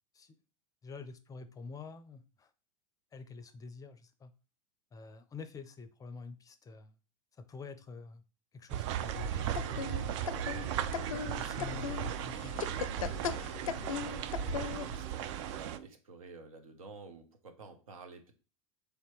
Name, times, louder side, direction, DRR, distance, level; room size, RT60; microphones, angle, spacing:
voice 1, 0.8-2.5 3.1-4.3 4.9-6.9 7.3-8.2 8.5-10.1 11.1-12.6 13.0-13.1, left 4 dB, 20° left, 11 dB, 0.5 m, -48 dB
sound 1, 8.7-15.8, right 11 dB, 60° right, 0.4 m, -37 dB
sound 2, 9.1-15.0, left 7 dB, 80° left, 0.4 m, -39 dB
sound 3, 9.6-15.9, right 10 dB, 20° right, 0.7 m, -50 dB
voice 2, 14.5-18.4, right 4 dB, 80° right, 6 dB, 0.8 m, -50 dB
3.3 x 2.8 x 4.5 m, 0.34 s
hypercardioid pair, 90°, 17 cm